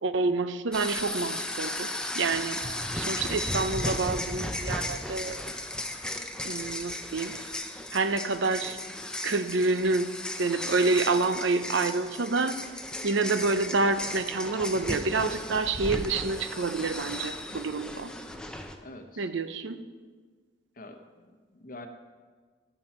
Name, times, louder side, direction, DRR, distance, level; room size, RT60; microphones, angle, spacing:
voice 1, 0.0-2.6 3.0-5.4 6.4-7.4 7.9-8.8 9.2-10.1 10.4-12.5 13.0-18.1 19.2-19.8, right 3 dB, 75° right, 11 dB, 0.7 m, -28 dB
sound 1, 0.7-18.8, left 1 dB, 5° left, 0.6 m, -35 dB
voice 2, 18.8-19.3 20.8-21.9, left 2 dB, 45° left, 6 dB, 1.0 m, -46 dB
17.0 x 7.0 x 4.4 m, 1.5 s
head